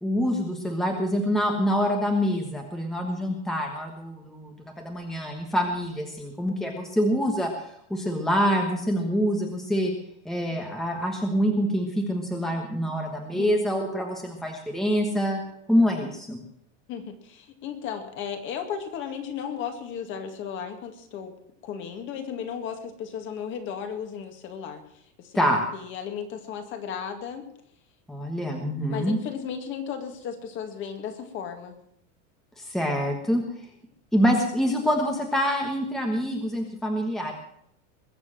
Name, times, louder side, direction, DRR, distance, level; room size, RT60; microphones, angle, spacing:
voice 1, 0.0-7.5 7.9-9.9 10.2-15.4 15.7-16.4 25.3-25.6 28.1-29.2 32.6-33.4 34.1-37.3, equal, ahead, 2 dB, 1.3 m, -26 dB
voice 2, 13.3-13.6 16.9-21.3 21.6-24.8 25.2-25.4 25.7-27.5 28.9-31.7, left 7 dB, 35° left, 6 dB, 2.2 m, -35 dB
21.5 x 7.3 x 7.4 m, 0.70 s
supercardioid pair, 170°, 36 cm